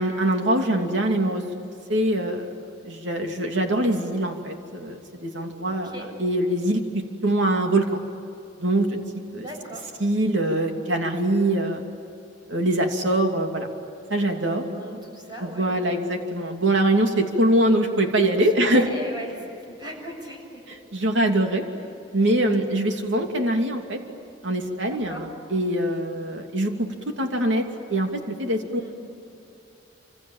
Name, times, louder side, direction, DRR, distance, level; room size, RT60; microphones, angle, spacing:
voice 1, 0.0-1.4 1.9-2.5 2.8-5.9 6.2-7.9 8.6-9.0 9.3-9.5 10.0-11.8 12.5-13.7 14.1-14.6 15.4-18.9 20.7-21.6 22.1-24.0 24.4-27.6 27.9-28.9, right 1 dB, 80° right, 3 dB, 2.9 m, -23 dB
voice 2, 5.7-6.1 9.3-9.9 14.4-16.1 18.4-20.7 24.8-25.2 28.8-28.9, equal, 25° right, 1 dB, 7.4 m, -39 dB
28.5 x 27.0 x 7.5 m, 2.6 s
head